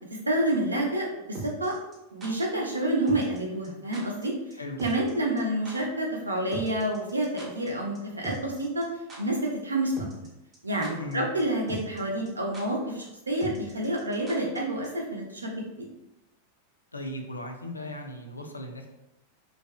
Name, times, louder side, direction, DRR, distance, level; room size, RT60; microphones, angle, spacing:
voice 1, 0.3-1.8 2.1-4.3 4.8-8.9 9.2-10.0 10.6-15.6, right 1 dB, 80° right, 0 dB, 0.5 m, -28 dB
sound 1, 1.3-2.3 3.1-3.4 3.6-3.7 3.9-4.3 4.5-4.6 4.8-5.1 5.4-5.5 5.7-5.8 6.5-7.7 8.0-8.1 8.2-8.8 9.1-9.2 10.0-10.3 10.5-11.1 11.4-11.5 11.7-12.0 12.3-12.4 12.5-12.6 13.4-14.6 14.8-14.9, right 1 dB, 25° right, 0.6 m, -39 dB
voice 2, 11.0-11.3 16.9-18.9, left 1 dB, 80° left, 3 dB, 0.3 m, -37 dB
2.5 x 2.3 x 2.3 m, 0.94 s
figure-of-eight pair, 90°, 0 cm